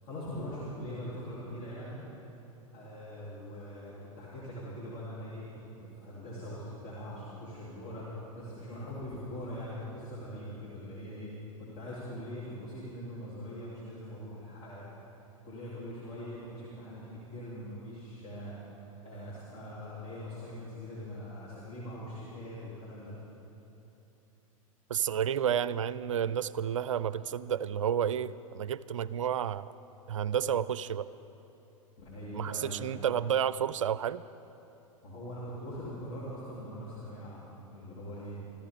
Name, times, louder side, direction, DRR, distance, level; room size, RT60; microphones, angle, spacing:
voice 1, 0.0-2.0 2.7-5.4 5.8-11.3 11.7-14.9 15.4-18.5 19.0-23.1 32.0-32.8 35.0-38.4, equal, 40° left, -8 dB, 3.4 m, -42 dB
voice 2, 24.9-29.7 30.1-31.1 32.3-34.2, right 9 dB, 65° right, 18 dB, 0.4 m, -31 dB
25.5 x 14.5 x 3.7 m, 3.0 s
figure-of-eight pair, 95°, 18 cm